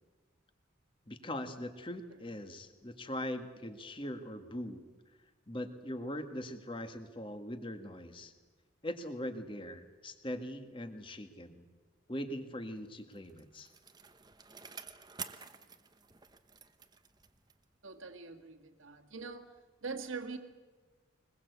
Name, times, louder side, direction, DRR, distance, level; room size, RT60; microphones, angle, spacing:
voice 1, 1.1-4.8 5.5-8.3 8.8-11.6 12.1-13.7, left 1 dB, 25° left, 8 dB, 1.7 m, -41 dB
Bicycle, 12.9-17.8 18.1-18.2, right 6 dB, 20° right, 0.9 m, -50 dB
voice 2, 17.8-19.5 19.8-20.4, right 4 dB, 75° right, 7 dB, 2.0 m, -43 dB
22.5 x 21.5 x 8.2 m, 1.4 s
head